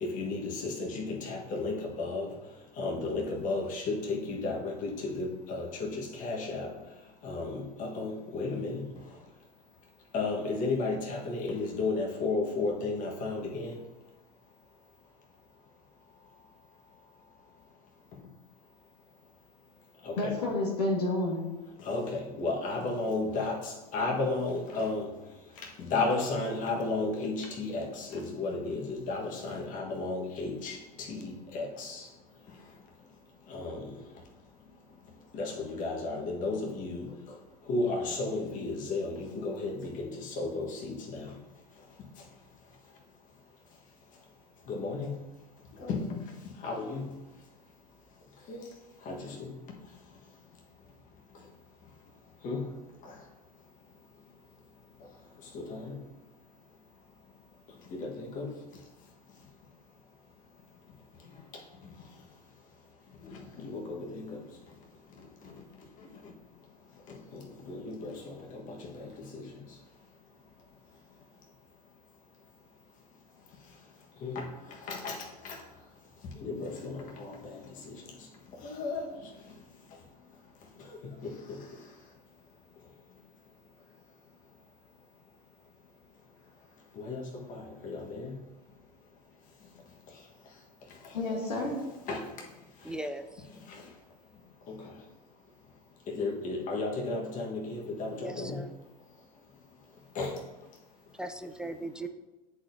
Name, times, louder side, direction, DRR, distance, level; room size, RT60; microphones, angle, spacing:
voice 1, 0.0-2.3 2.8-6.7 7.2-8.8 10.1-13.8 20.0-20.4 21.8-25.1 25.8-32.1 33.5-33.9 35.3-37.1 37.7-41.3 44.7-45.1 45.8-46.4 46.6-47.1 48.5-48.6 49.0-49.5 52.4-52.6 55.5-55.9 57.9-58.5 63.2-64.4 67.3-67.4 67.7-69.4 74.2-74.4 74.9-75.2 75.4-75.6 76.4-77.6 78.6-79.0 81.2-81.6 87.0-87.2 87.5-88.3 92.1-92.2 94.7-94.8 96.1-98.6 100.1-100.3, left 3 dB, 40° left, -1 dB, 1.4 m, -33 dB
voice 2, 20.2-21.5 91.1-91.8, left 2 dB, 90° left, -1 dB, 1.3 m, -30 dB
voice 3, 92.8-93.5 98.2-98.7 101.1-102.1, right 1 dB, 5° right, 8 dB, 0.3 m, -38 dB
9.5 x 4.3 x 2.7 m, 1.1 s
hypercardioid pair, 95°, 20 cm